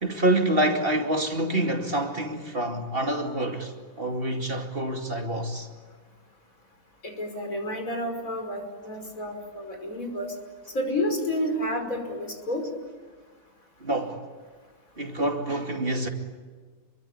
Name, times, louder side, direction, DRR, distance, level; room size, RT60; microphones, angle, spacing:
voice 1, 0.0-5.7 13.8-14.2 15.0-16.1, right 1 dB, 40° right, 2.7 m, -27 dB
voice 2, 7.0-10.3 10.7-12.6, left 1 dB, 70° left, 5.9 m, -30 dB
28.5 x 23.0 x 8.7 m
omnidirectional pair, 1.5 m